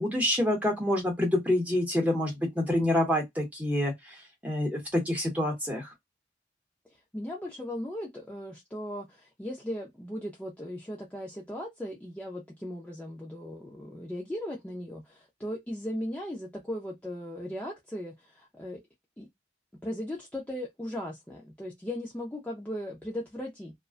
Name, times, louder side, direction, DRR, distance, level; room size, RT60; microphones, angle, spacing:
voice 1, 0.0-4.2 4.4-5.9, left 1 dB, 10° right, 0.8 m, -27 dB
voice 2, 6.9-18.8 19.2-19.3 19.7-23.7, left 1 dB, 10° left, 0.4 m, -37 dB
2.4 x 2.1 x 2.4 m
head